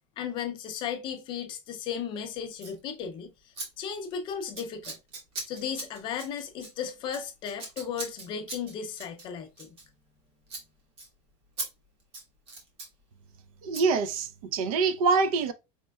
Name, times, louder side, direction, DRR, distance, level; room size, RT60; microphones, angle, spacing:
voice 1, 0.2-5.0 5.5-9.8, left 7 dB, 25° left, 0.4 m, -35 dB
Scissors, 2.5-2.8 3.5-3.7 3.9-4.2 4.5-10.2 10.5-10.7 11.0-11.1 11.6-11.7 12.0-12.9 13.7-13.9, right 3 dB, 35° right, 1.2 m, -40 dB
voice 2, 13.6-15.5, right 4 dB, 80° right, 0.6 m, -25 dB
4.3 x 3.3 x 2.2 m
supercardioid pair, 180°, 18 cm